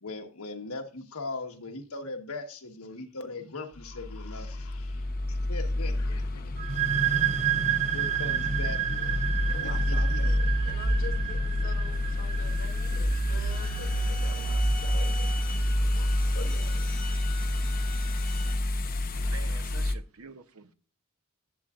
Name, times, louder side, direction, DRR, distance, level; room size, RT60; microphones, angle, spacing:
voice 1, 0.0-7.3 7.9-9.2 9.6-10.2 19.1-19.8, left 3 dB, 80° left, 1.3 m, -40 dB
sound 1, 3.8-19.9, left 1 dB, 40° left, 0.8 m, -28 dB
sound 2, 6.6-14.0, right 9 dB, 30° right, 0.5 m, -30 dB
voice 2, 9.5-15.3 15.8-16.8, left 3 dB, 60° left, 1.5 m, -45 dB
sound 3, 13.5-18.5, left 3 dB, 5° left, 1.6 m, -43 dB
voice 3, 19.3-20.7, right 4 dB, 80° right, 0.9 m, -47 dB
11.5 x 8.6 x 2.5 m
head